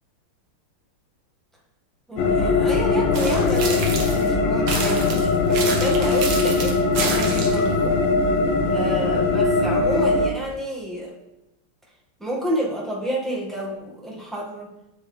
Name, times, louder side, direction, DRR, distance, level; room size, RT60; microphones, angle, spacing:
voice 1, 2.1-8.0 8.7-11.1 12.2-14.7, right 1 dB, ahead, -4 dB, 1.4 m, -30 dB
sound 1, 2.2-10.3, left 3 dB, 70° left, 1.5 m, -20 dB
sound 2, 3.1-4.3 4.7-7.7, right 4 dB, 80° right, 2.0 m, -29 dB
8.4 x 7.6 x 3.3 m, 0.95 s
omnidirectional pair, 2.3 m